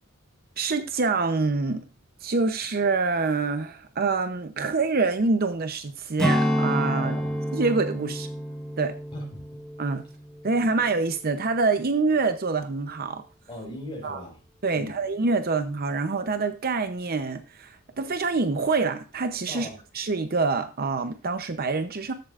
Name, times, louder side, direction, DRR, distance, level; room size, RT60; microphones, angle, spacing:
voice 1, 0.6-1.8 2.2-7.1 7.5-8.3 8.8-8.9 9.8-10.0 10.4-13.2 14.0-14.2 14.6-19.7 19.9-22.1, right 4 dB, 45° right, 0.7 m, -26 dB
Strum, 6.2-10.9 11.3-11.5, equal, 5° left, 1.3 m, -29 dB
voice 2, 7.0-7.4 9.1-9.6 13.5-14.4 14.7-14.9 19.5-19.8, left 1 dB, 25° left, 5.4 m, -39 dB
13.5 x 8.0 x 2.5 m
head